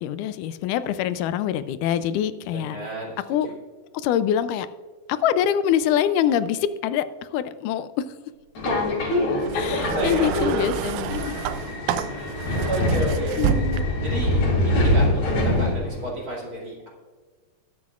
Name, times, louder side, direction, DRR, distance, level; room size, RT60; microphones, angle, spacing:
voice 1, 0.0-2.8 3.3-3.5 3.9-4.7 5.1-8.1 9.5-11.3 13.4-13.8, left 9 dB, 90° left, 13 dB, 2.1 m, -24 dB
voice 2, 2.5-3.5 9.7-10.3 12.1-13.6 14.0-16.9, right 1 dB, 30° right, -3 dB, 2.7 m, -32 dB
Subway metro underground, 8.5-16.1, left 1 dB, 65° left, 3.6 m, -24 dB
sound 1, 9.4-14.2 15.1-15.3, right 7 dB, 85° right, 2.2 m, -29 dB
21.0 x 7.9 x 2.4 m, 1.5 s
omnidirectional pair, 3.6 m